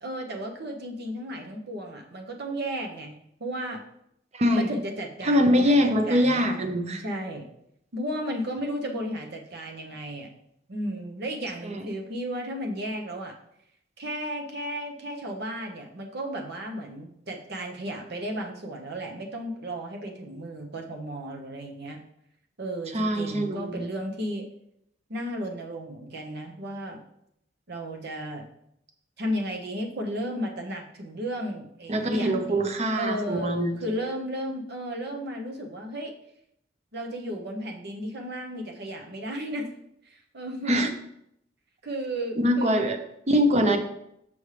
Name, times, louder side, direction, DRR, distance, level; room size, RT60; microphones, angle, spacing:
voice 1, 0.0-3.8 4.5-6.7 7.0-7.4 7.9-10.3 10.7-13.3 14.0-22.0 22.6-24.5 25.1-27.0 27.7-28.4 29.2-32.6 32.9-36.1 36.9-39.7 40.1-40.9 41.8-42.8, equal, 60° right, 2 dB, 1.0 m, -34 dB
voice 2, 4.3-4.7 5.2-7.0 11.7-11.8 22.9-23.9 31.9-33.8 40.7-40.9 42.4-43.0 43.3-43.8, equal, 35° right, 6 dB, 0.7 m, -23 dB
7.0 x 5.4 x 3.3 m, 0.77 s
head